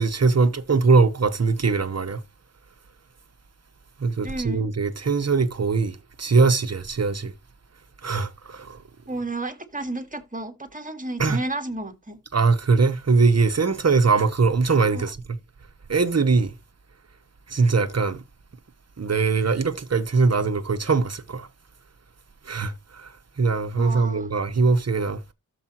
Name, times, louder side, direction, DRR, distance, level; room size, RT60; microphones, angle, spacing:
voice 1, 0.0-2.2 4.0-7.3 8.0-8.8 11.2-11.4 12.3-15.2 15.9-16.5 17.5-18.2 19.0-21.5 22.5-22.7 23.0-23.1 23.4-25.2, right 4 dB, 45° right, 1.0 m, -21 dB
voice 2, 4.2-4.6 9.1-12.2 14.9-15.1 23.7-24.3, right 2 dB, 25° right, 1.8 m, -32 dB
13.0 x 5.0 x 2.9 m
wide cardioid pair, 100°, 34 cm